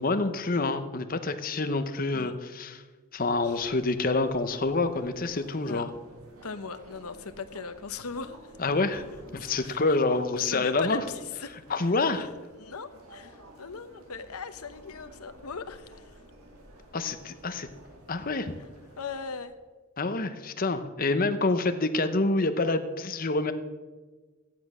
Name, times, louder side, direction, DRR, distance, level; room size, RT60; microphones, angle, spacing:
voice 1, 0.0-2.8 3.1-5.9 8.6-9.0 9.3-11.0 11.7-12.3 16.9-17.7 18.1-18.5 20.0-23.5, left 3 dB, 40° left, 9 dB, 0.9 m, -27 dB
sound 1, 3.2-19.4, right 1 dB, 85° right, 2.5 m, -52 dB
voice 2, 6.4-8.5 9.3-10.0 10.3-11.9 12.6-16.1 19.0-19.6, left 5 dB, 90° left, 10 dB, 0.9 m, -39 dB
14.0 x 10.0 x 6.2 m, 1.3 s
head